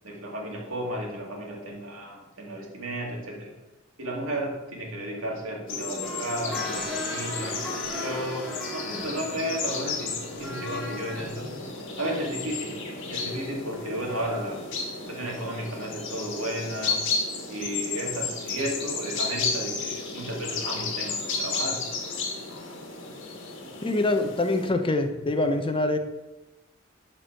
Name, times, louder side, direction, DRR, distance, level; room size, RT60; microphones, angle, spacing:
voice 1, 0.0-3.5 4.0-14.7 15.1-17.0 17.5-21.9 25.1-25.2, right 1 dB, 85° right, -1 dB, 2.1 m, -33 dB
sound 1, 5.7-24.7, left 4 dB, 60° left, 1.6 m, -33 dB
sound 2, 6.0-11.3 11.9-12.0, left 1 dB, ahead, 1.7 m, -37 dB
voice 2, 23.8-26.0, left 2 dB, 25° left, 7 dB, 0.6 m, -25 dB
11.5 x 4.5 x 4.5 m, 1.0 s
head